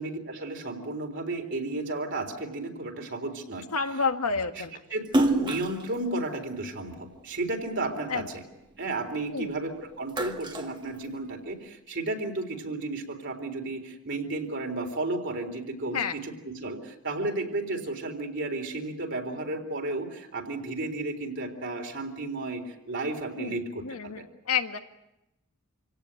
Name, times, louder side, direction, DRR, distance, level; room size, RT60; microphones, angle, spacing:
voice 1, 0.0-3.7 4.6-4.7 4.9-8.4 8.8-24.2, right 2 dB, 55° right, 3 dB, 3.8 m, -33 dB
voice 2, 3.7-4.8 8.1-8.3 9.3-9.5 15.9-16.1 23.4-24.8, left 5 dB, 85° left, 6 dB, 1.7 m, -30 dB
Splash splatter, 5.0-7.6 8.1-9.5 9.9-11.6, right 1 dB, 20° right, 1.5 m, -30 dB
27.5 x 17.5 x 9.0 m, 0.92 s
head